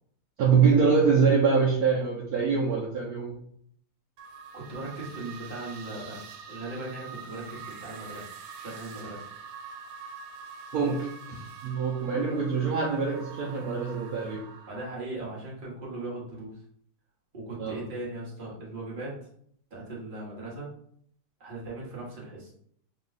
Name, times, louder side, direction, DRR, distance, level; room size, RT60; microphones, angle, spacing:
voice 1, 0.4-3.4 10.7-11.4 11.6-14.4 17.6-17.8, right 5 dB, 70° right, -4 dB, 0.9 m, -24 dB
sound 1, 4.2-14.9, right 6 dB, 90° right, 1.6 m, -45 dB
voice 2, 4.5-8.2 8.6-9.3 14.7-16.5 17.3-19.2 19.7-20.7 21.4-22.5, right 2 dB, 30° right, -5 dB, 1.1 m, -38 dB
3.7 x 2.4 x 4.0 m, 0.65 s
omnidirectional pair, 2.4 m